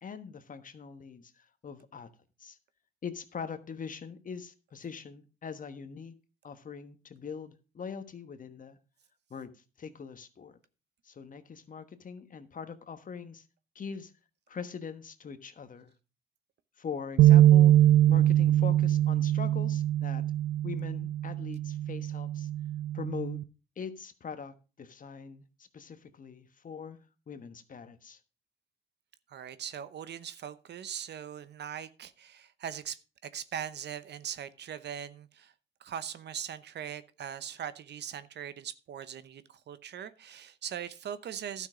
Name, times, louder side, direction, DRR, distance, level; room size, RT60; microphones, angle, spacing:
voice 1, 0.0-2.1 2.4-2.6 3.0-6.1 6.4-8.8 9.3-9.5 9.8-10.6 11.0-13.4 13.7-14.1 14.5-15.9 16.8-20.2 20.6-22.5 22.9-23.4 23.8-27.0 27.3-28.2, left 6 dB, 40° left, 1.3 m, -42 dB
sound 1, 17.2-23.4, right 12 dB, 90° right, 0.5 m, -23 dB
voice 2, 29.3-35.5 35.8-41.7, right 9 dB, 60° right, 0.9 m, -40 dB
12.0 x 6.4 x 5.0 m
cardioid pair, 90°, 20 cm